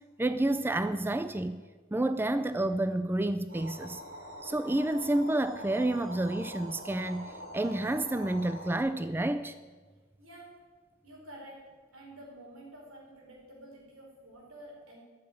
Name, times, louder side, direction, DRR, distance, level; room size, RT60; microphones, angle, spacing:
voice 1, 0.2-1.6 1.9-4.0 4.4-9.5, right 1 dB, 10° right, 0.4 m, -29 dB
sound 1, 3.5-8.8, equal, 65° right, 3.7 m, -44 dB
voice 2, 10.2-10.5 11.0-11.6 11.9-15.0, right 1 dB, 85° right, 4.5 m, -49 dB
13.5 x 7.4 x 9.0 m
head